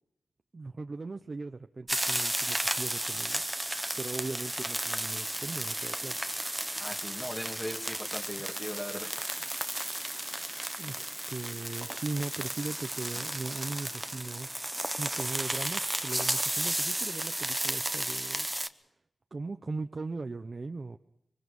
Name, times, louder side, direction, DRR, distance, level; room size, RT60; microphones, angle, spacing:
voice 1, 0.5-3.4 4.0-6.2 10.8-18.5 19.3-21.0, right 3 dB, 40° right, 7 dB, 0.8 m, -39 dB
sound 1, 1.9-18.7, right 1 dB, 10° right, 0.9 m, -33 dB
voice 2, 6.8-9.5, left 1 dB, 20° left, 1 dB, 2.4 m, -39 dB
25.0 x 22.5 x 5.4 m, 0.82 s
wide cardioid pair, 110°, 0 cm